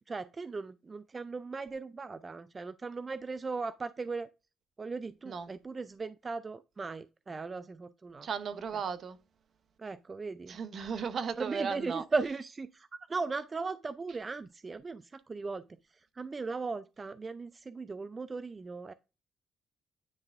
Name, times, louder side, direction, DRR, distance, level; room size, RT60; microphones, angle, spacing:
voice 1, 0.1-4.3 4.8-8.3 9.8-10.6 11.4-15.7 16.1-18.9, right 4 dB, 30° right, 0.3 m, -37 dB
voice 2, 8.2-9.2 10.5-12.0, right 6 dB, 55° right, 0.8 m, -35 dB
9.5 x 3.3 x 3.5 m
cardioid pair, 90°, 0 cm